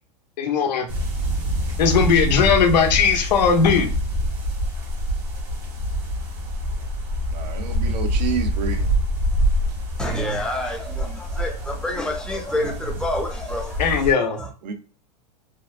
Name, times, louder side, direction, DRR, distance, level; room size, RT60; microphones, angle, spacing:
voice 1, 0.4-0.9 1.8-3.9 13.8-14.4, left 6 dB, 85° left, 0.6 m, -18 dB
sound 1, 0.9-14.1, equal, 65° right, 1.1 m, -26 dB
voice 2, 7.3-8.9 14.6-14.7, right 7 dB, 85° right, 0.6 m, -29 dB
voice 3, 10.0-13.9 14.2-14.5, left 1 dB, 5° left, 0.5 m, -28 dB
2.8 x 2.0 x 2.3 m
supercardioid pair, 130°, 21 cm